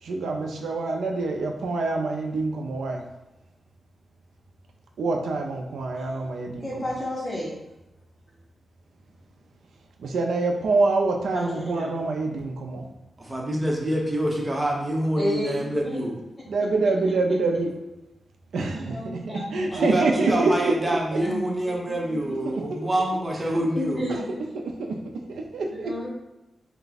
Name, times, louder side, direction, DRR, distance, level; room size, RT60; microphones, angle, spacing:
voice 1, 0.0-3.0 5.0-6.7 10.0-12.8 16.5-17.7 18.5-21.2 22.4-22.8 23.5-23.6 24.1-24.2 24.5-25.0 25.3-26.1, right 3 dB, 90° right, 2 dB, 0.6 m, -26 dB
voice 2, 6.6-7.6 11.3-11.9 15.2-16.0 18.7-20.2 21.2-21.4 21.8-21.9 23.7-24.3 25.7-26.1, left 1 dB, 30° left, -8 dB, 1.1 m, -31 dB
voice 3, 13.2-16.2 19.7-24.0, right 1 dB, 20° right, -1 dB, 1.0 m, -26 dB
4.4 x 2.3 x 4.0 m, 0.95 s
cardioid pair, 70°, 0 cm